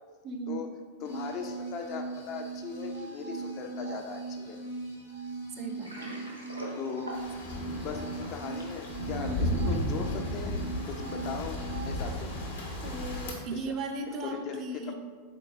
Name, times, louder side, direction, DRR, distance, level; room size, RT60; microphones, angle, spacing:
voice 1, 0.2-0.7 5.6-6.1 9.2-9.7 12.8-14.9, right 2 dB, 35° right, 5 dB, 0.4 m, -37 dB
sound 1, 1.0-12.1, right 3 dB, 85° left, 1.1 m, -40 dB
voice 2, 1.0-4.6 6.8-7.1 7.7-11.6 11.8-12.3 13.5-13.8 14.1-14.9, left 6 dB, 40° left, 5 dB, 0.4 m, -39 dB
Water, 5.6-8.8, equal, 85° right, 0.7 m, -43 dB
sound 2, 7.1-13.3, left 1 dB, 55° left, 0.7 m, -34 dB
3.8 x 3.7 x 2.3 m, 1.4 s
figure-of-eight pair, 90°, 0 cm